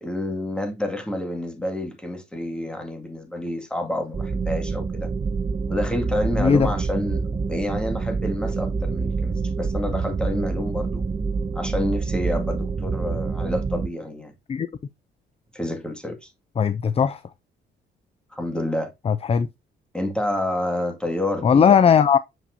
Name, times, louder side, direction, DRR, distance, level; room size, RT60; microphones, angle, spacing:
voice 1, 0.0-5.1 5.7-11.0 11.5-14.3 15.5-16.3 18.3-18.9 19.9-22.0, left 1 dB, 5° left, 2.0 m, -28 dB
sound 1, 4.1-13.9, right 4 dB, 25° right, 0.5 m, -27 dB
voice 2, 6.4-6.7 14.5-14.7 16.6-17.2 19.1-19.5 21.4-22.2, left 7 dB, 30° left, 0.4 m, -18 dB
7.1 x 5.9 x 2.7 m
cardioid pair, 90°, 20 cm